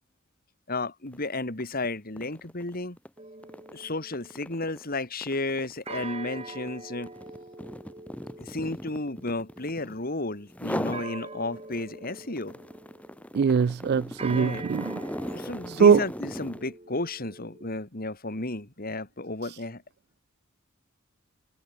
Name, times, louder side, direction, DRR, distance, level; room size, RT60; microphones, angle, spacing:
voice 1, 0.7-3.0 3.7-7.1 8.4-12.6 14.3-14.7 15.3-19.8, left 2 dB, 45° left, 2.7 m, -33 dB
sound 1, 1.1-1.3 1.6-10.1 10.5-11.1 11.5-16.7, equal, 5° left, 4.1 m, -39 dB
sound 2, 3.2-4.7 5.9-13.4 14.2-17.8, right 3 dB, 30° right, 5.1 m, -44 dB
voice 2, 13.3-15.0 15.7-16.0, right 6 dB, 50° right, 0.3 m, -21 dB
head